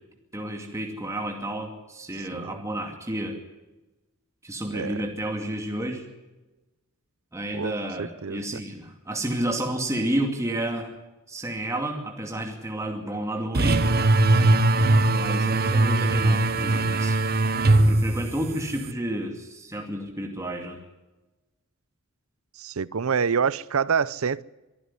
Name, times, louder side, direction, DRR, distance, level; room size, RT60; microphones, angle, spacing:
voice 1, 0.3-3.4 4.4-6.1 7.3-10.9 11.3-13.8 15.1-17.2 17.7-20.8, right 1 dB, 15° right, 2.5 m, -31 dB
voice 2, 2.3-2.6 4.7-5.0 7.5-7.7 8.0-8.6 22.6-24.4, right 6 dB, 75° right, 0.6 m, -27 dB
sound 1, 13.5-18.9, right 2 dB, 45° right, 1.0 m, -21 dB
24.0 x 11.5 x 9.8 m
head